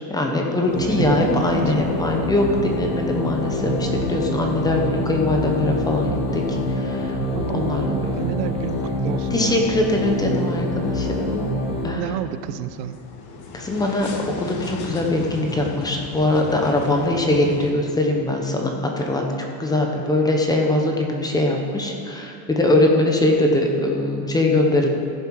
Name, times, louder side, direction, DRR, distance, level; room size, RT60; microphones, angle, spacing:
voice 1, 0.1-7.2 7.5-8.0 9.3-11.4 11.8-12.2 13.5-14.1 14.4-25.1, left 2 dB, 10° left, 1 dB, 0.8 m, -22 dB
sound 1, 0.7-11.9, left 1 dB, 85° left, 2.6 m, -25 dB
voice 2, 0.8-1.8 7.0-9.5 11.9-13.0, right 11 dB, 90° right, 13 dB, 0.7 m, -31 dB
sound 2, 9.1-17.7, left 3 dB, 40° left, 1.2 m, -37 dB
15.5 x 7.4 x 4.7 m, 2.5 s
cardioid pair, 160°, 46 cm